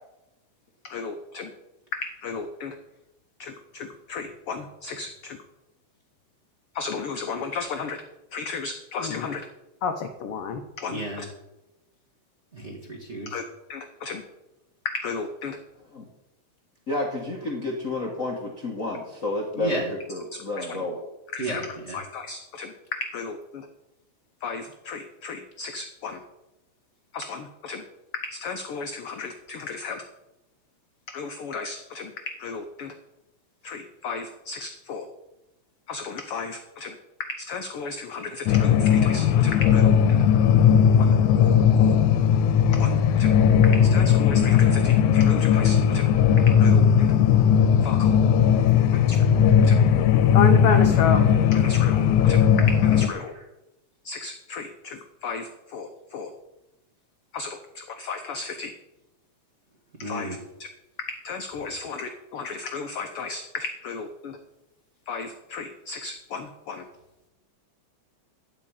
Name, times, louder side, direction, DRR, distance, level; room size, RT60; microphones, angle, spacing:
voice 1, 0.8-1.5 1.9-2.7 3.4-5.4 6.7-8.0 8.3-9.5 9.8-11.2 13.3-13.4 13.7-14.2 14.8-15.6 20.6-20.7 21.3-21.7 21.9-23.7 24.4-26.2 27.1-27.8 28.1-30.0 31.1-32.9 33.6-35.1 35.9-36.9 37.2-40.2 41.0-42.0 42.7-43.4 43.7-46.1 46.5-47.1 47.8-48.1 49.6-49.7 50.3-51.3 51.5-53.3 54.0-56.3 57.3-58.7 60.0-60.4 61.1-64.4 65.1-66.8, left 5 dB, 75° left, 6 dB, 1.3 m, -33 dB
voice 2, 10.9-11.3 12.5-13.4 19.6-19.9 21.4-22.0 60.0-60.4, right 1 dB, 30° right, -1 dB, 1.4 m, -32 dB
voice 3, 16.9-21.0 53.3-53.4, left 2 dB, 45° left, -1 dB, 1.0 m, -30 dB
sound 1, 38.5-53.1, left 8 dB, 90° left, 2.2 m, -18 dB
12.0 x 5.1 x 8.7 m, 0.96 s
omnidirectional pair, 3.4 m